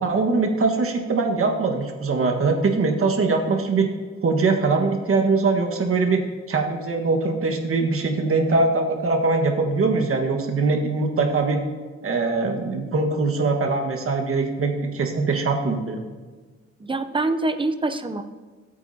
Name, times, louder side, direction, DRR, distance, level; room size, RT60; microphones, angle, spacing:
voice 1, 0.0-3.9 4.2-6.2 6.5-11.6 12.0-16.0, right 3 dB, 50° right, 3 dB, 1.5 m, -22 dB
voice 2, 16.8-18.2, right 2 dB, 15° right, 9 dB, 0.7 m, -25 dB
18.5 x 8.3 x 2.8 m, 1.4 s
cardioid pair, 115°, 29 cm